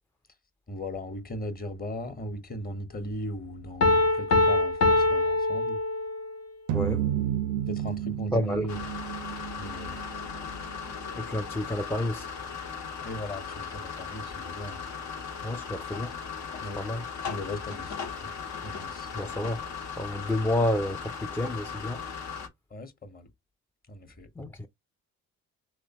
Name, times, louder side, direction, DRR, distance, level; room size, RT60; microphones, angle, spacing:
voice 1, 0.7-5.8 7.7-8.8 9.5-10.0 13.0-14.9 16.6-16.8 17.3-18.3 18.6-19.1 22.7-23.3 23.9-24.3, left 1 dB, 30° left, 1.0 m, -38 dB
Piano, 3.8-6.4, left 2 dB, 55° left, 0.7 m, -23 dB
voice 2, 6.7-7.1 8.3-8.7 11.2-12.3 15.4-16.2 16.8-17.0 19.1-19.6 20.0-22.0 24.4-24.7, left 1 dB, 10° left, 0.4 m, -29 dB
sound 1, 6.7-11.1, right 11 dB, 90° right, 0.5 m, -32 dB
sound 2, 8.7-22.5, left 6 dB, 75° left, 1.1 m, -37 dB
3.5 x 3.2 x 2.9 m
cardioid pair, 90°, 30 cm